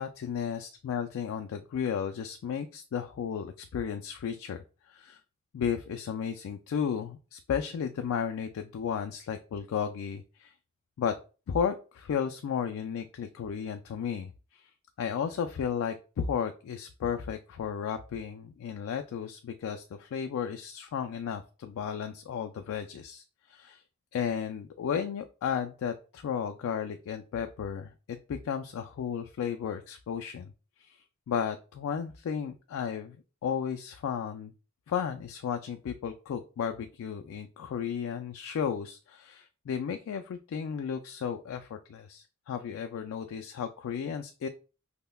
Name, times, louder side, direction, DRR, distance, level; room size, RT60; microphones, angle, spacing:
voice 1, 0.0-5.2 5.5-10.5 11.0-11.2 11.5-14.7 15.0-23.8 24.1-30.5 30.8-34.5 34.9-44.5, left 7 dB, 65° left, 6 dB, 0.3 m, -34 dB
5.4 x 2.1 x 2.2 m, 0.34 s
head